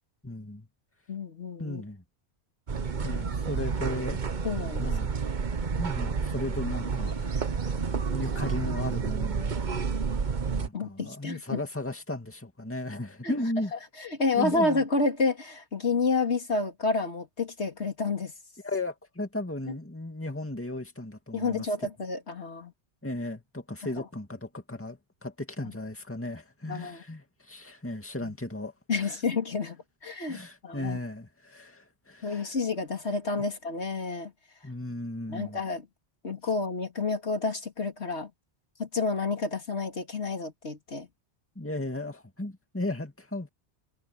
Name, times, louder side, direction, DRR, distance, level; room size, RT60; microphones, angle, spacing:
voice 1, 0.2-0.7 1.6-2.0 3.0-4.2 4.8-5.1 5.8-7.4 8.1-9.6 10.6-13.7 14.3-14.8 18.6-21.7 23.0-28.7 29.0-29.2 30.3-32.5 34.6-35.6 41.6-43.5, left 1 dB, 10° left, 2.2 m, -35 dB
voice 2, 1.1-1.8 4.4-4.9 6.4-6.5 10.7-11.6 13.2-13.3 13.7-18.3 21.3-22.7 24.0-24.1 25.6-25.7 26.7-27.0 28.2-28.3 28.9-31.0 32.2-34.3 35.3-35.9 36.2-38.3 38.8-41.1, left 3 dB, 75° left, 2.8 m, -30 dB
sound 1, 2.7-10.7, right 5 dB, 45° right, 1.1 m, -30 dB
omnidirectional pair, 1.2 m